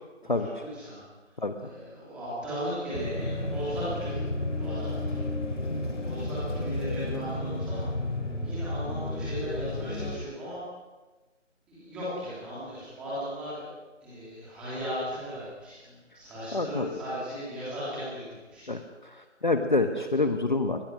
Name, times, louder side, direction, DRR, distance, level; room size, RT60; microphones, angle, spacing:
voice 1, 0.4-1.0 1.6-4.2 4.6-5.2 5.7-7.8 8.4-10.6 11.7-13.7 14.0-18.8, equal, 5° right, -10 dB, 3.1 m, -37 dB
sound 1, 2.9-10.2, left 1 dB, 75° left, 4.6 m, -32 dB
voice 2, 16.5-16.9 18.7-20.8, left 3 dB, 40° left, 7 dB, 1.2 m, -27 dB
23.0 x 20.5 x 6.3 m, 1.2 s
figure-of-eight pair, 170°, 37 cm